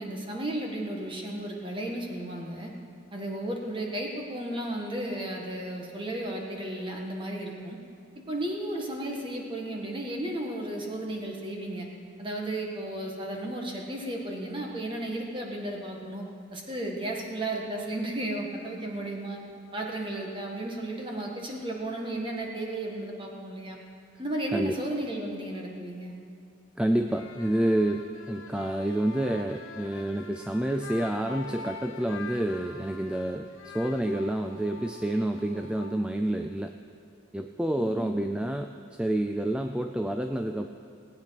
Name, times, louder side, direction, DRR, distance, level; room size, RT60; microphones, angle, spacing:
voice 1, 0.0-2.7 3.1-7.8 8.3-11.9 12.2-16.2 16.5-19.4 19.7-23.8 24.2-26.1 37.8-38.2, right 1 dB, 25° right, 0 dB, 1.7 m, -34 dB
voice 2, 26.8-36.7 37.3-38.7 39.0-40.7, right 1 dB, 5° right, 6 dB, 0.3 m, -28 dB
sound 1, 27.0-36.8, left 3 dB, 80° left, 1.2 m, -45 dB
18.5 x 8.8 x 5.9 m, 2.3 s
head